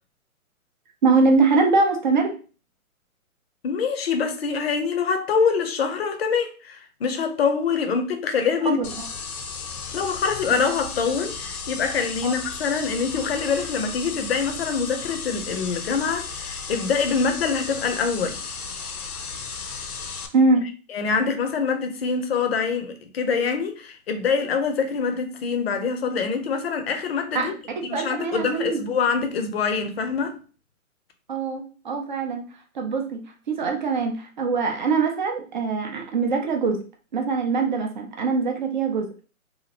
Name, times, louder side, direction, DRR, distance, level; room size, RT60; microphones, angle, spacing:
voice 1, 1.0-2.3 8.6-8.9 10.5-10.6 12.2-12.3 20.3-20.6 27.3-28.8 31.3-32.4 32.7-33.2 33.5-36.8 37.1-39.1, right 4 dB, 35° right, 0.5 m, -23 dB
voice 2, 3.6-8.8 9.9-18.4 20.9-27.5 27.8-30.4, left 5 dB, 45° left, 0.6 m, -25 dB
sound 1, 8.8-20.3, left 5 dB, 85° left, 0.7 m, -34 dB
2.9 x 2.5 x 2.8 m
figure-of-eight pair, 135°, 43 cm